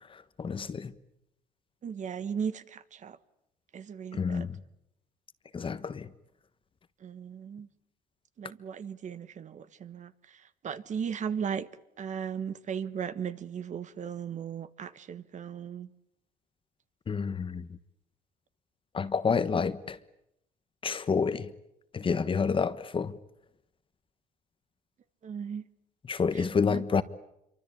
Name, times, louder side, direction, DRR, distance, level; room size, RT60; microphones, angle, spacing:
voice 1, 0.1-0.9 4.1-4.6 5.5-6.1 17.1-17.7 18.9-20.0 20.8-21.5 21.9-23.2 26.1-27.0, left 5 dB, 30° left, 1.3 m, -29 dB
voice 2, 1.8-3.2 3.7-4.5 7.0-7.7 8.4-11.7 12.0-15.9 25.2-25.6 26.3-26.8, right 7 dB, 45° right, 1.3 m, -37 dB
27.0 x 24.5 x 8.7 m
cardioid pair, 110°, 17 cm